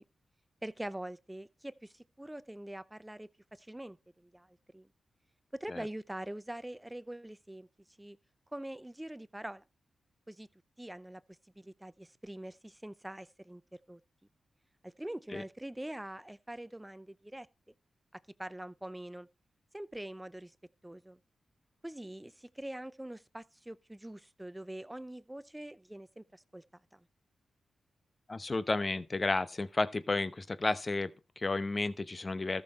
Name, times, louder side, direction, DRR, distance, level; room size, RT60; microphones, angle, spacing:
voice 1, 0.6-4.9 5.5-7.7 8.0-8.2 8.5-9.6 10.3-10.5 10.8-11.2 11.6-13.6 13.9-14.0 14.8-17.5 18.1-19.3 19.7-20.5 20.8-21.2 21.8-26.6 26.9-27.0, right 1 dB, 10° right, 0.6 m, -44 dB
voice 2, 28.3-32.6, left 3 dB, 40° left, 0.9 m, -32 dB
14.0 x 6.2 x 4.2 m
supercardioid pair, 45°, 0 cm